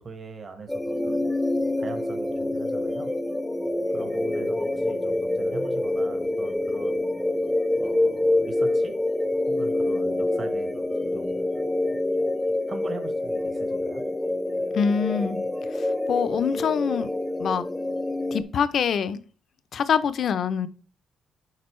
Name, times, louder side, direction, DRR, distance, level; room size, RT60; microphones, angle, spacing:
voice 1, 0.0-1.2 1.8-3.1 3.9-7.0 7.8-8.9 9.5-11.3 12.7-14.0, right 4 dB, 40° right, 6 dB, 1.4 m, -41 dB
sound 1, 0.7-18.4, left 1 dB, 5° left, 0.6 m, -26 dB
voice 2, 14.7-15.4 15.7-17.1 17.4-17.6 18.3-19.2 19.7-20.7, left 7 dB, 60° left, 12 dB, 0.6 m, -25 dB
10.5 x 4.0 x 3.1 m, 0.40 s
cardioid pair, 90°, 0 cm